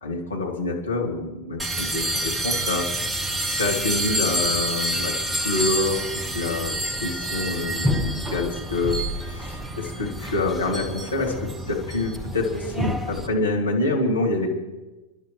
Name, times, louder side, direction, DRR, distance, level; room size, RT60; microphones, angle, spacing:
voice 1, 0.0-3.2 3.5-6.7 7.0-14.5, left 2 dB, 75° left, -1 dB, 2.8 m, -27 dB
sound 1, 1.6-13.3, right 1 dB, 10° right, 1.1 m, -28 dB
29.5 x 11.5 x 3.2 m, 1.1 s
figure-of-eight pair, 90°, 0 cm